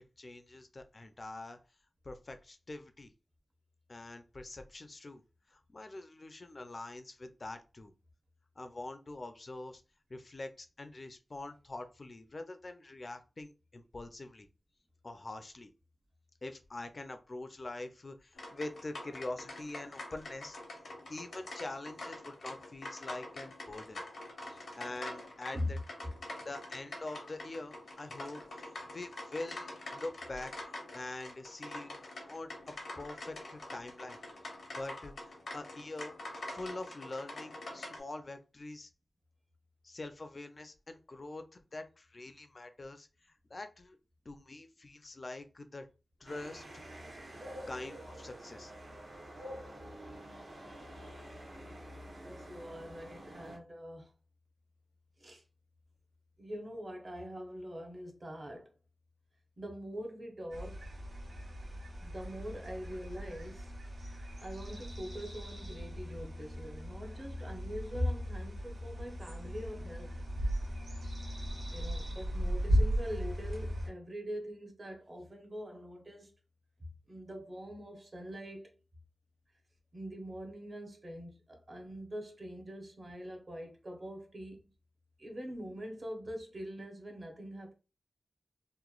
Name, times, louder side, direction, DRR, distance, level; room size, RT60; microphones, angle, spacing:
voice 1, 0.2-1.6 2.0-3.1 3.9-5.2 5.5-7.9 8.6-9.8 10.1-14.5 15.0-15.7 16.4-20.6 21.1-24.0 24.4-25.8 26.4-34.2 34.8-36.2 36.5-38.9 39.8-43.1 43.5-44.0 44.3-45.9 46.2-46.8 47.7-48.7, left 2 dB, 40° left, 0.4 m, -44 dB
sound 1, 18.3-38.0, left 2 dB, 85° left, 0.8 m, -46 dB
sound 2, 46.3-53.6, equal, 65° right, 0.9 m, -48 dB
voice 2, 52.2-54.1 55.2-55.4 56.4-58.7 59.6-60.9 62.0-63.7 64.4-70.1 71.7-76.4 76.8-78.8 79.9-84.7 85.2-87.7, equal, 40° right, 0.7 m, -43 dB
sound 3, 60.5-73.9, equal, 85° right, 1.3 m, -37 dB
2.9 x 2.1 x 2.3 m
wide cardioid pair, 110°, 0 cm